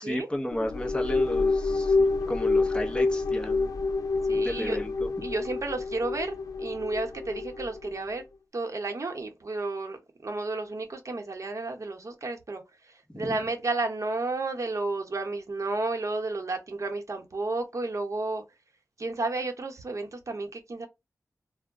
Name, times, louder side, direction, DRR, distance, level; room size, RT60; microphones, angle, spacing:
voice 1, 0.0-3.7 4.3-5.1 13.1-13.4, equal, 15° left, 0.7 m, -33 dB
sound 1, 0.5-8.1, left 3 dB, 70° left, 0.4 m, -28 dB
voice 2, 4.2-4.8 5.2-8.2 8.5-18.4 19.0-20.9, right 3 dB, 55° right, 0.8 m, -32 dB
2.3 x 2.0 x 3.5 m
wide cardioid pair, 80°, 6 cm